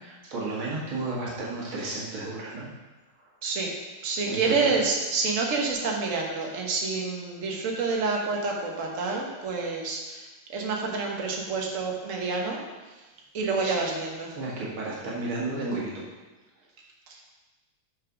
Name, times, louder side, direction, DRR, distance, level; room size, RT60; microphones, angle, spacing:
voice 1, 0.0-2.7 4.2-4.8 13.6-13.8 14.3-16.0, right 2 dB, 85° right, -5 dB, 2.5 m, -33 dB
voice 2, 3.4-3.7 4.0-12.6 13.0-13.1 13.3-14.3 17.1-17.2, right 4 dB, 45° right, -1 dB, 1.5 m, -28 dB
6.7 x 5.7 x 6.0 m, 1.2 s
omnidirectional pair, 2.2 m